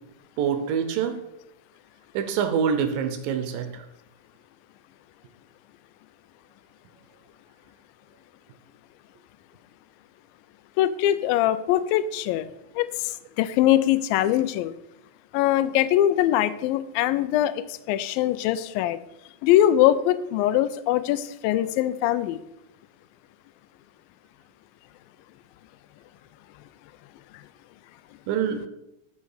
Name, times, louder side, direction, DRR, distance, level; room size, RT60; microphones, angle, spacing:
voice 1, 0.4-1.2 2.1-3.7 28.3-28.6, right 7 dB, 75° right, 8 dB, 2.5 m, -25 dB
voice 2, 10.8-14.7 15.3-19.0 19.4-22.4 27.3-27.4, left 12 dB, 85° left, 14 dB, 2.3 m, -22 dB
12.0 x 5.3 x 4.8 m, 0.86 s
omnidirectional pair, 4.1 m